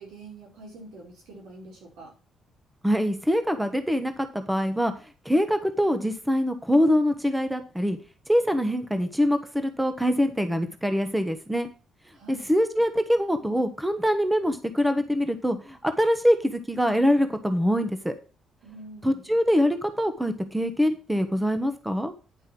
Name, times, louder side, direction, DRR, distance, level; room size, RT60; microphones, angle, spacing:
voice 1, 0.0-2.1 12.1-12.5 18.6-19.3, right 2 dB, 85° right, -1 dB, 5.0 m, -45 dB
voice 2, 2.8-4.9 5.2-8.0 8.3-11.7 12.3-18.1 19.0-22.1, equal, 5° right, 8 dB, 1.2 m, -24 dB
9.7 x 5.5 x 6.0 m, 0.34 s
cardioid pair, 90°, 0 cm